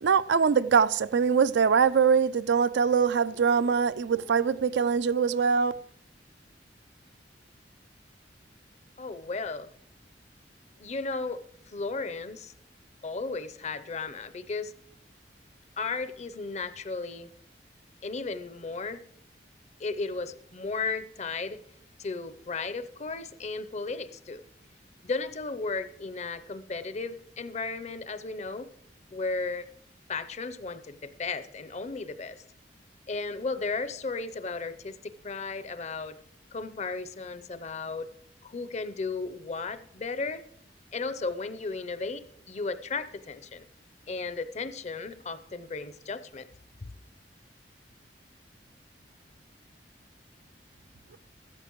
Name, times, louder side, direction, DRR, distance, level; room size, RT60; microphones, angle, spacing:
voice 1, 0.0-5.7, right 6 dB, 80° right, 0.4 m, -23 dB
voice 2, 9.0-9.7 10.8-11.4 11.7-12.5 13.0-14.7 15.8-17.3 18.0-19.0 19.8-21.6 22.0-24.4 25.0-28.7 29.1-29.7 30.1-32.4 33.1-36.2 36.5-38.1 38.4-40.4 40.9-43.6 44.1-46.5 46.8-46.9, left 4 dB, 40° left, 0.6 m, -35 dB
15.5 x 13.0 x 3.0 m
head